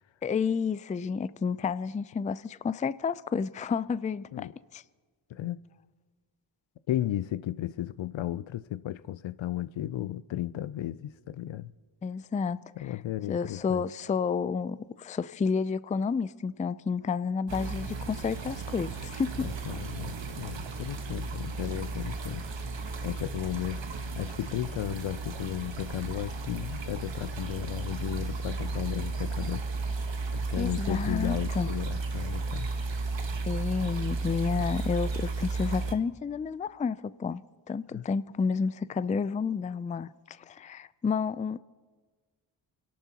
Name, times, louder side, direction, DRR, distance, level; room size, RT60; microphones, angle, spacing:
voice 1, 0.2-4.8 12.0-12.9 13.3-19.5 30.6-31.7 33.5-37.4 37.7-41.6, left 5 dB, 15° left, 0.3 m, -30 dB
voice 2, 5.3-5.6 6.9-11.7 12.8-13.9 19.4-22.4 23.0-23.8 24.1-29.6 30.3-32.7 37.9-38.0, left 13 dB, 65° left, 0.5 m, -34 dB
sound 1, 17.5-35.9, right 3 dB, 60° right, 1.3 m, -34 dB
27.5 x 12.0 x 2.9 m
cardioid pair, 40°, 49 cm